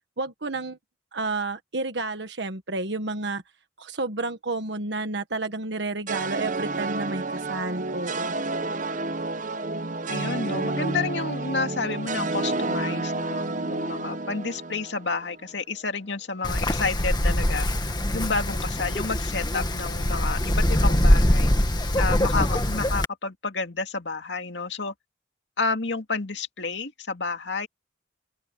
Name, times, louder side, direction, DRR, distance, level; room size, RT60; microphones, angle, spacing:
voice 1, 0.2-0.8 1.1-3.4 3.8-8.4, right 3 dB, 75° right, 1.4 m, -31 dB
sound 1, 6.1-15.4, right 2 dB, 45° right, 1.0 m, -30 dB
voice 2, 10.1-17.7 18.1-21.5 21.9-24.9 25.6-27.7, left 4 dB, 85° left, 2.3 m, -30 dB
Wind, 16.4-23.1, left 1 dB, 25° left, 1.9 m, -23 dB
open air
head